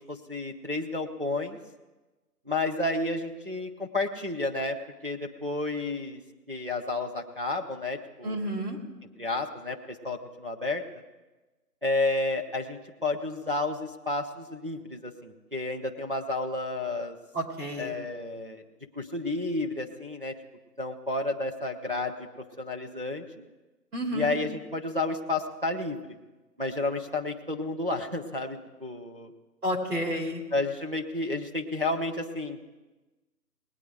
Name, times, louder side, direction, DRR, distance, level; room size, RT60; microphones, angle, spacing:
voice 1, 0.1-1.6 2.5-4.8 5.0-6.2 6.5-8.4 9.2-10.8 11.8-17.1 17.8-18.6 19.0-20.3 20.8-22.3 22.6-23.4 24.1-26.0 26.6-29.3 30.5-32.7, left 2 dB, 35° right, 0 dB, 0.7 m, -31 dB
voice 2, 8.2-8.8 17.3-17.9 23.9-24.4 29.6-30.4, equal, 65° right, 1 dB, 2.9 m, -30 dB
19.0 x 8.9 x 4.7 m, 1.2 s
figure-of-eight pair, 175°, 48 cm